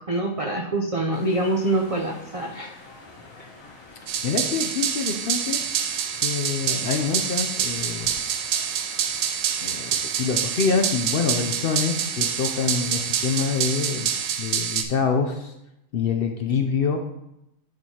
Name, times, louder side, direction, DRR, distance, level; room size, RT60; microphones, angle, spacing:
voice 1, 0.0-2.8, right 2 dB, 50° right, 0 dB, 0.4 m, -25 dB
sound 1, 1.1-14.3, left 2 dB, 80° left, 1.8 m, -46 dB
sound 2, 4.1-14.8, right 8 dB, 85° right, 1.1 m, -26 dB
voice 2, 4.2-5.6 6.2-8.2 9.6-14.1 14.4-15.5 15.9-17.0, left 5 dB, 60° left, 4 dB, 0.6 m, -26 dB
10.5 x 4.5 x 2.8 m, 0.85 s
omnidirectional pair, 1.4 m